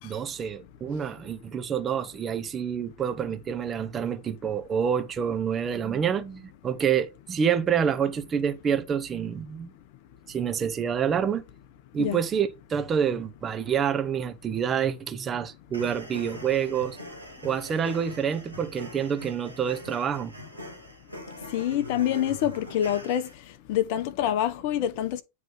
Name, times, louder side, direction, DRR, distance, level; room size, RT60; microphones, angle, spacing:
voice 1, 0.0-9.7 10.3-11.4 11.9-17.0 17.4-20.3, right 7 dB, 25° right, 0.8 m, -27 dB
sound 1, 15.7-23.3, left 1 dB, 90° right, 2.0 m, -42 dB
voice 2, 21.5-23.3 23.7-25.2, left 11 dB, 50° left, 0.6 m, -26 dB
9.0 x 3.1 x 5.3 m
figure-of-eight pair, 90°, 0 cm